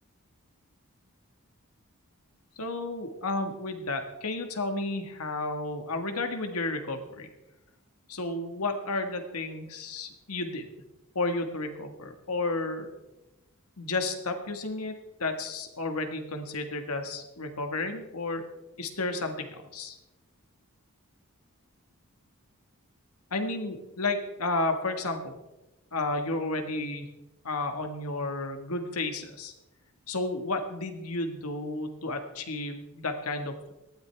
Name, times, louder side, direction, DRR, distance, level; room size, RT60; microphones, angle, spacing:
voice 1, 2.6-7.3 8.1-10.7 11.1-12.9 13.8-18.4 18.8-20.0 23.3-25.4 25.9-27.1 27.4-29.5 30.1-33.7, left 2 dB, 85° left, 6 dB, 1.7 m, -32 dB
18.0 x 13.0 x 3.5 m, 0.97 s
head